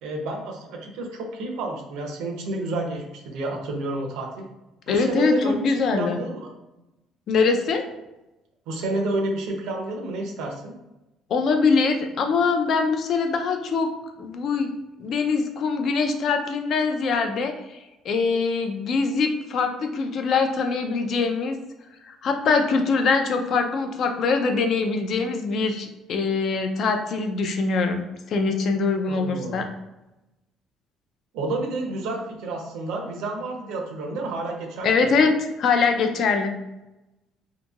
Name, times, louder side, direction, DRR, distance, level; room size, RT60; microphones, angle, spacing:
voice 1, 0.0-4.5 4.9-6.5 8.7-10.7 29.1-29.7 31.3-35.1, right 2 dB, 80° right, 1 dB, 0.6 m, -30 dB
voice 2, 4.9-6.2 7.3-7.8 11.3-13.9 14.2-14.7 15.0-17.8 18.0-21.6 22.1-29.6 34.8-35.3 35.6-36.5, left 4 dB, 50° left, 5 dB, 0.4 m, -23 dB
2.8 x 2.6 x 2.4 m, 0.98 s
cardioid pair, 140°, 0 cm